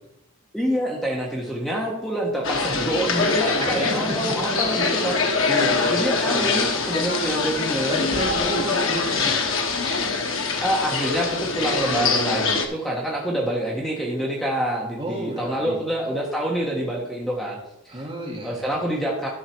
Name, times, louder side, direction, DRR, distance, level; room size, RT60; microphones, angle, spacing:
voice 1, 0.5-5.2 5.9-8.0 10.6-17.6 17.8-18.1 18.4-19.3, right 1 dB, ahead, -3 dB, 1.3 m, -26 dB
sound 1, 2.4-12.7, left 4 dB, 60° left, 1.2 m, -23 dB
sound 2, 2.7-13.4, equal, 55° right, 3.4 m, -44 dB
voice 2, 3.6-4.8 5.5-6.1 7.9-9.5 15.0-15.8 17.9-18.6, equal, 25° right, 0 dB, 1.7 m, -31 dB
12.5 x 5.8 x 4.6 m, 0.88 s
head